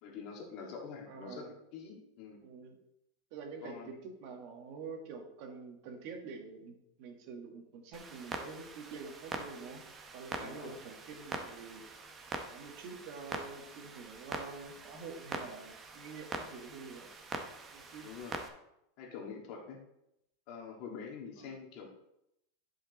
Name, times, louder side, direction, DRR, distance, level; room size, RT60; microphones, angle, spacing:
voice 1, 0.0-2.4 3.6-3.9 10.3-10.7 18.0-18.4 19.0-19.8 20.5-21.9, left 6 dB, 45° left, 2 dB, 1.8 m, -46 dB
voice 2, 1.1-1.5 2.4-2.8 3.3-9.8 10.1-11.8 12.5-17.2 17.7-18.1 21.4-21.6, right 4 dB, 50° right, 4 dB, 1.6 m, -47 dB
Clock, 7.9-18.5, right 3 dB, 20° right, 0.9 m, -44 dB
10.0 x 5.0 x 4.0 m, 0.82 s
supercardioid pair, 155°, 0 cm